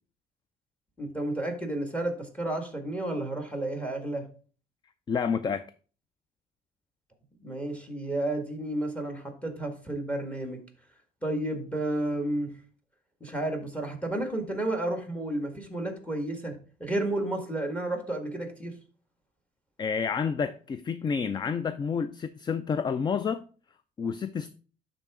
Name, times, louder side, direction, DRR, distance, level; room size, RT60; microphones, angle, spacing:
voice 1, 1.0-4.3 7.4-10.6 11.2-12.6 13.2-18.7, right 1 dB, 10° left, 1.8 m, -31 dB
voice 2, 5.1-5.7 19.8-23.5 24.0-24.5, left 6 dB, 25° left, 0.3 m, -29 dB
11.5 x 4.0 x 3.6 m
cardioid pair, 110°, 17 cm